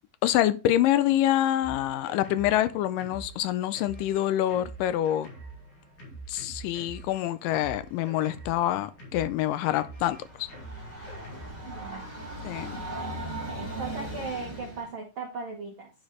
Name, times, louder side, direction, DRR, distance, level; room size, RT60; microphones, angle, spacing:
voice 1, 0.2-5.3 6.3-10.5 12.4-12.8, left 12 dB, 80° left, 2.1 m, -26 dB
Drum kit, 1.6-11.7, right 2 dB, 60° left, 4.2 m, -46 dB
Train, 10.0-14.9, right 1 dB, 15° left, 4.0 m, -38 dB
voice 2, 11.6-12.0 13.5-15.9, right 4 dB, 65° right, 1.2 m, -37 dB
9.7 x 5.8 x 3.1 m
omnidirectional pair, 4.0 m